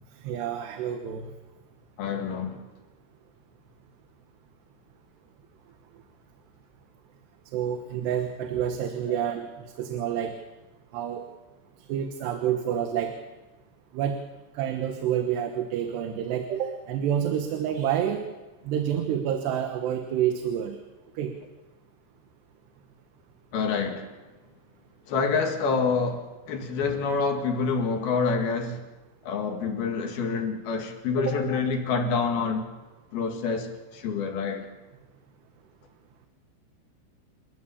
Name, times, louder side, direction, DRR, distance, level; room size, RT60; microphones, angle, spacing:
voice 1, 0.2-1.3 7.5-9.5 9.8-10.4 10.9-11.3 11.9-13.2 13.9-14.2 14.6-18.3 18.7-20.8 21.2-21.3 31.2-31.4, right 9 dB, 85° right, 3.4 m, -28 dB
voice 2, 2.0-2.6 9.1-9.2 23.5-24.1 25.1-28.8 29.3-32.7 33.1-34.7, left 5 dB, 70° left, 3.8 m, -27 dB
28.5 x 14.5 x 7.0 m
omnidirectional pair, 4.7 m